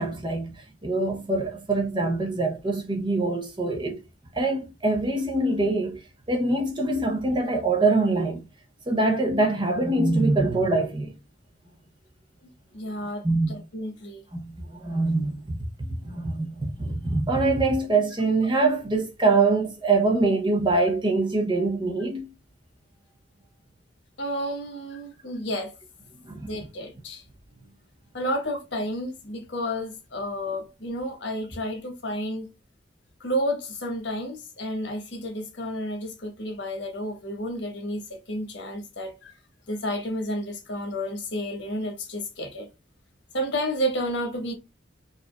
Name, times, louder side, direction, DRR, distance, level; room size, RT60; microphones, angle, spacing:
voice 1, 0.0-4.0 4.3-6.0 6.3-8.4 8.9-11.1 13.2-13.5 14.3-14.5 14.8-15.6 16.0-22.3 26.2-26.5, right 2 dB, 25° right, 0.7 m, -24 dB
voice 2, 12.7-14.2 24.2-25.7 26.4-27.2 28.1-32.5 33.2-39.3 39.7-42.7 43.3-44.5, equal, 75° left, 1.1 m, -31 dB
4.8 x 2.5 x 2.2 m
head